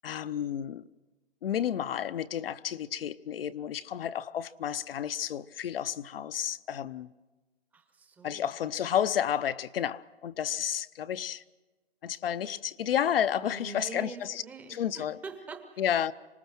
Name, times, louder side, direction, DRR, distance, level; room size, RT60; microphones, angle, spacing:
voice 1, 0.0-0.8 1.4-7.1 8.2-11.4 12.0-14.4 14.7-15.2 15.8-16.1, left 9 dB, 65° left, 0.8 m, -31 dB
voice 2, 7.7-8.5 13.4-15.8, right 4 dB, 5° right, 0.7 m, -44 dB
26.0 x 19.5 x 6.0 m
hypercardioid pair, 165°, 31 cm